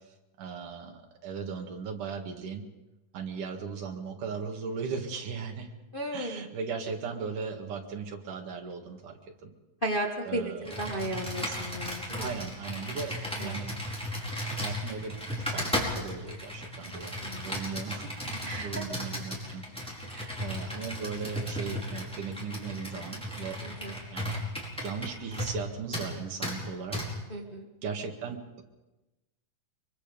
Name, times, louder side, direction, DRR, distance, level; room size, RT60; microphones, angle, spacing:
voice 1, 0.4-2.6 3.1-5.7 6.1-9.5 10.3-10.9 12.2-13.7 14.6-17.2 17.4-20.1 20.4-23.6 24.1-24.3 24.6-27.0 27.8-28.6, right 5 dB, 65° right, 3 dB, 3.4 m, -38 dB
voice 2, 5.9-6.5 9.8-12.3 13.4-13.6 17.2-17.6 18.4-18.8 20.1-20.3 23.6-23.9 27.3-27.7, right 1 dB, 40° left, 0 dB, 0.7 m, -35 dB
Computer keyboard, 10.6-25.6 25.9-26.1 26.4-26.6 26.9-27.1, equal, ahead, 4.6 m, -35 dB
24.0 x 23.5 x 5.3 m, 1.1 s
omnidirectional pair, 4.0 m